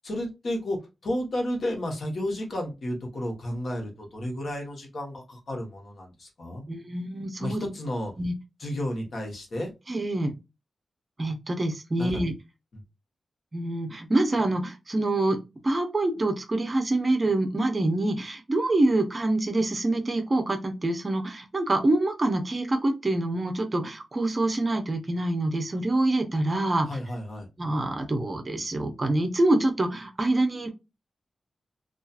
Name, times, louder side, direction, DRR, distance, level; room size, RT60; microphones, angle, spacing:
voice 1, 0.0-6.6 7.4-8.1 8.6-9.7 12.0-12.2 12.7-12.8 26.9-27.4, left 1 dB, 55° left, 1 dB, 1.0 m, -32 dB
voice 2, 6.7-7.7 8.2-8.3 9.9-10.3 11.2-12.3 13.5-15.4 15.6-27.0 27.6-30.7, right 2 dB, 30° right, 6 dB, 0.6 m, -26 dB
2.7 x 2.3 x 2.3 m, 0.25 s
wide cardioid pair, 155°, 0 cm